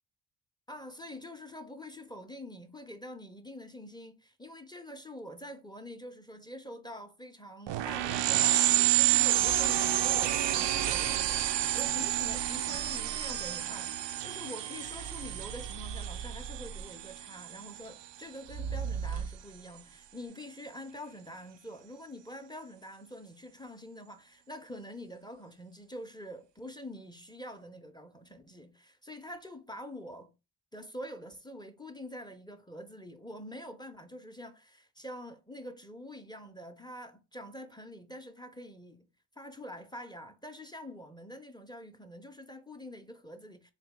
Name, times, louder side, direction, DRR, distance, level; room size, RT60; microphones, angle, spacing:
voice 1, 0.7-30.3 30.7-43.7, equal, 10° left, 0.6 m, -46 dB
sound 1, 7.7-17.8, right 14 dB, 60° right, 0.5 m, -29 dB
sound 2, 9.4-9.7 10.6-13.6 14.8-17.1 18.4-19.6, right 6 dB, 85° right, 1.0 m, -41 dB
4.0 x 2.7 x 3.6 m
cardioid pair, 75°, 50 cm